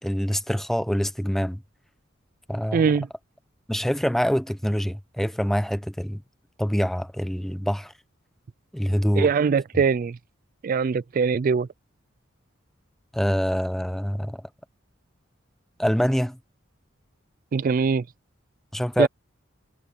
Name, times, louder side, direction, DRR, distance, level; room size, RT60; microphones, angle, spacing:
voice 1, 0.0-1.6 2.5-2.9 3.7-6.2 6.6-7.9 8.7-9.3 13.1-14.4 15.8-16.4 18.7-19.1, equal, ahead, 0.7 m, -25 dB
voice 2, 2.7-3.1 9.2-10.2 10.6-11.7 17.5-18.0 19.0-19.1, right 5 dB, 45° right, 0.3 m, -22 dB
head